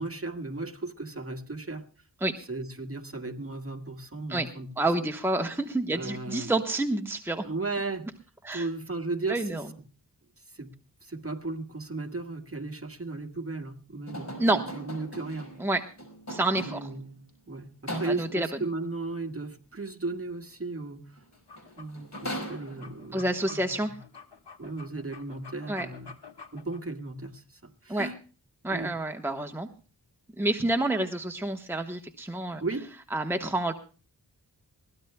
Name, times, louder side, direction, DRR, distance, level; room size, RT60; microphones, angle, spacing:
voice 1, 0.0-1.9 2.5-4.7 5.0-5.1 5.9-6.5 7.4-8.1 8.5-9.6 10.5-10.7 11.0-14.3 14.7-15.6 16.6-17.2 17.5-21.2 21.8-24.0 24.6-26.1 26.5-28.1 28.7-28.9 32.6-32.9, right 3 dB, 35° right, 5 dB, 1.8 m, -35 dB
voice 2, 4.8-7.4 8.4-8.7 9.3-9.6 14.4-14.6 15.6-15.8 16.3-16.8 17.9-18.5 23.1-23.9 25.7-25.9 27.9-28.1 28.6-29.7 30.4-32.6 33.1-33.7, right 2 dB, 5° right, 4 dB, 1.1 m, -28 dB
sound 1, 14.1-17.1 17.9-18.5 21.2-21.3 21.6-23.1, equal, 40° left, 5.5 m, -39 dB
sound 2, 21.3-26.8, left 5 dB, 70° left, 1.6 m, -49 dB
22.5 x 16.5 x 2.2 m, 0.37 s
wide cardioid pair, 70°, 42 cm